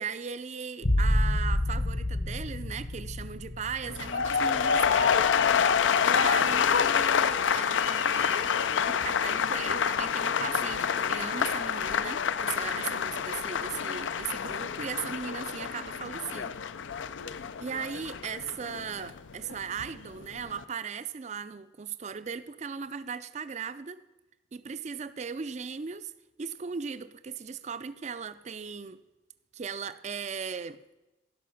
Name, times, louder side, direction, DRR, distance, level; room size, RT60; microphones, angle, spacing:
voice 1, 0.0-5.2 6.0-8.5 8.8-16.6 17.6-24.0 24.5-26.1 26.4-29.0 29.5-30.8, right 6 dB, 35° right, 15 dB, 0.4 m, -37 dB
sound 1, 0.8-6.3 6.7-7.3, left 1 dB, 50° left, 0.9 m, -30 dB
sound 2, 3.8-19.9 20.2-20.6, left 7 dB, 85° left, 0.5 m, -27 dB
16.5 x 5.8 x 6.3 m, 1.0 s
head